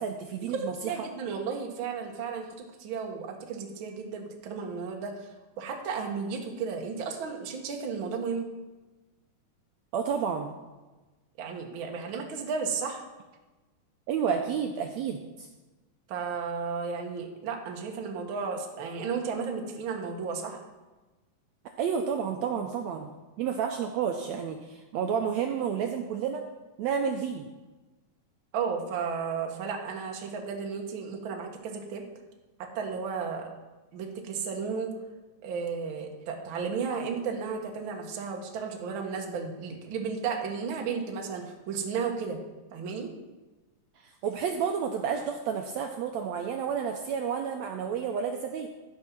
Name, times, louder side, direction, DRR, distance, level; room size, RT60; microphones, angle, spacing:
voice 1, 0.0-1.0 9.9-10.5 14.1-15.5 21.8-23.1 23.4-26.4 26.8-27.5 44.0-48.7, right 7 dB, 85° right, 4 dB, 1.6 m, -30 dB
voice 2, 0.5-2.5 2.8-5.1 5.6-8.5 11.4-13.0 16.1-20.6 28.5-32.0 32.6-33.5 33.9-34.9 35.4-42.4 42.7-43.1, right 5 dB, 55° right, 2 dB, 1.5 m, -33 dB
14.5 x 5.3 x 5.9 m, 1.2 s
omnidirectional pair, 3.9 m